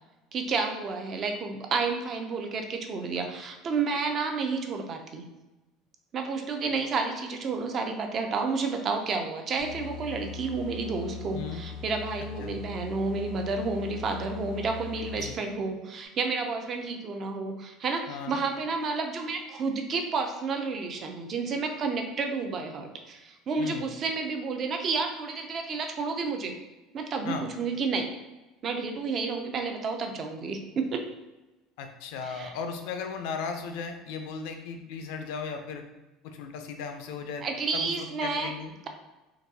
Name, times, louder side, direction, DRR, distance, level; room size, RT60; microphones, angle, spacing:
voice 1, 0.3-5.2 6.1-26.5 26.9-28.1 28.6-31.0 32.2-32.5 37.4-38.5, right 4 dB, 30° right, 4 dB, 0.3 m, -31 dB
sound 1, 9.6-15.5, left 7 dB, 85° right, 0.9 m, -41 dB
voice 2, 11.3-11.6 12.4-12.5 15.1-15.4 18.1-18.4 23.6-23.8 27.2-27.5 31.8-35.8 36.2-37.4 37.7-38.7, left 5 dB, 70° left, 5 dB, 0.4 m, -36 dB
3.9 x 2.5 x 2.6 m, 1.1 s
cardioid pair, 175°, 0 cm